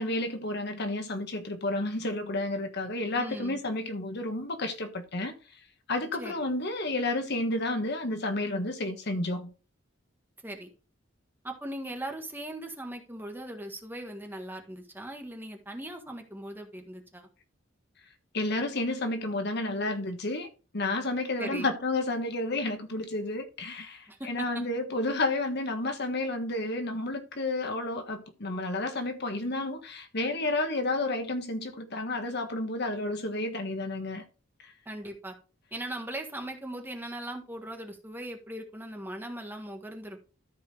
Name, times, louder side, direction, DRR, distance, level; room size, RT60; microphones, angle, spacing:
voice 1, 0.0-5.3 5.9-9.5 18.3-20.5 20.7-34.2 34.6-34.7, left 2 dB, 55° left, 1.4 m, -31 dB
voice 2, 3.2-3.6 6.2-6.5 10.4-10.7 11.4-17.3 21.4-21.7 24.1-24.6 34.8-35.3 35.7-40.2, right 1 dB, 10° right, 1.5 m, -39 dB
13.5 x 4.8 x 3.3 m
head